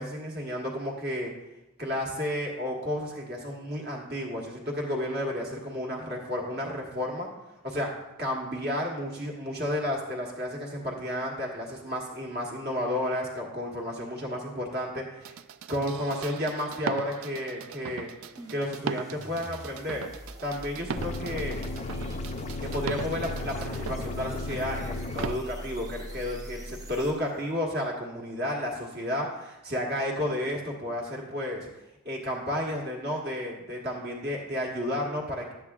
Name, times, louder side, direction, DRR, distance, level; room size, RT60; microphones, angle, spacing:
voice 1, 0.0-1.3 1.8-7.3 7.6-7.9 8.2-15.3 15.7-18.1 18.5-20.0 20.4-21.6 22.6-31.7 32.0-35.5, left 1 dB, 50° right, 0 dB, 1.6 m, -32 dB
sound 1, 15.2-24.0 25.2-25.4, right 6 dB, 70° right, 0.3 m, -38 dB
sound 2, 18.4-27.5, equal, 20° right, 0.7 m, -44 dB
sound 3, 21.0-25.4, left 2 dB, 30° left, 0.4 m, -34 dB
11.0 x 8.5 x 2.4 m, 0.94 s
head